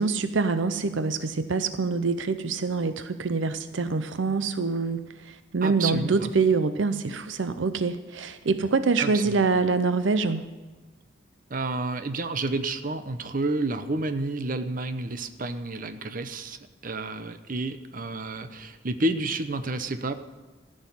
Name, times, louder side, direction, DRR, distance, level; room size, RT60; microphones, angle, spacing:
voice 1, 0.0-10.4, right 4 dB, 75° right, 11 dB, 0.6 m, -25 dB
voice 2, 5.6-6.3 9.0-9.4 11.5-16.6 16.8-20.1, right 2 dB, 45° right, 10 dB, 0.8 m, -30 dB
14.5 x 6.4 x 9.7 m, 1.3 s
head